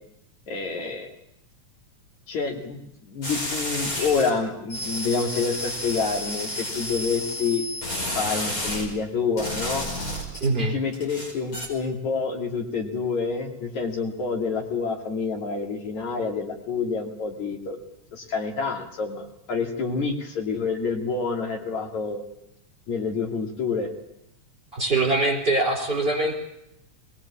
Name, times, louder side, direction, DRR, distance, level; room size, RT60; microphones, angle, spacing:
voice 1, 0.5-1.1 2.3-2.8 3.0-7.7 8.2-9.9 10.7-17.8 18.1-22.2 22.9-23.9, left 5 dB, 75° left, 2 dB, 4.0 m, -28 dB
sound 1, 3.2-4.3 4.7-8.9 9.4-10.5 10.9-11.7, left 1 dB, 45° left, 6.2 m, -31 dB
voice 2, 10.4-10.8 24.7-26.4, right 2 dB, 20° right, 2 dB, 4.2 m, -23 dB
21.0 x 21.0 x 8.6 m, 0.81 s
omnidirectional pair, 3.3 m